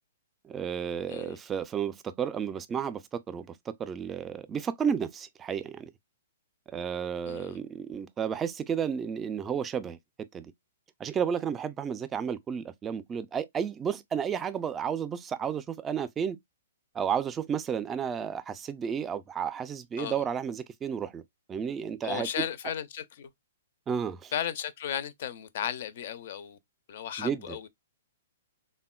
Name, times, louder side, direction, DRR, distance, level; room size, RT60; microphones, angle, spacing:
voice 1, 0.4-5.9 6.7-10.0 10.3-10.5 11.0-16.4 16.9-21.2 21.5-22.3 23.9-24.3 27.2-27.6, right 7 dB, 20° right, 0.3 m, -32 dB
voice 2, 7.3-7.6 20.0-20.2 22.0-23.3 24.3-26.6 26.9-27.7, left 9 dB, 60° left, 0.4 m, -35 dB
3.4 x 2.1 x 2.2 m
hypercardioid pair, 135°, 0 cm